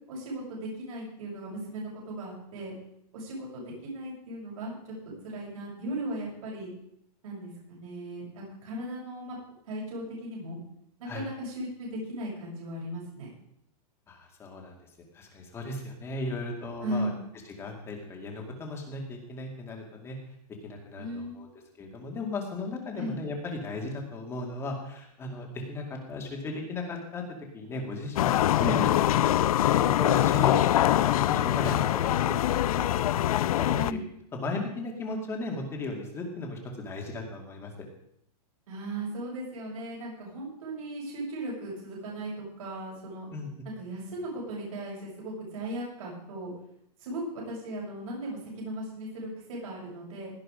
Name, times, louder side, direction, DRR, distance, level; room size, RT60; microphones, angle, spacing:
voice 1, 0.1-2.7 3.1-4.9 5.2-6.7 7.2-9.4 9.7-10.6 11.0-13.3 16.8-17.2 21.0-21.5 23.0-23.2 28.6-28.8 33.7-34.0 38.7-43.3 43.7-46.5 47.0-50.3, right 1 dB, 60° right, -4 dB, 7.4 m, -37 dB
voice 2, 14.1-14.7 15.1-17.1 17.6-20.2 20.6-21.5 21.8-27.2 27.5-28.9 29.7-33.8 34.3-37.7 43.3-43.5, left 2 dB, 10° left, 1 dB, 2.3 m, -36 dB
sound 1, 28.2-33.9, left 12 dB, 65° left, 0.5 m, -24 dB
17.5 x 9.8 x 5.1 m, 0.73 s
supercardioid pair, 170°, 20 cm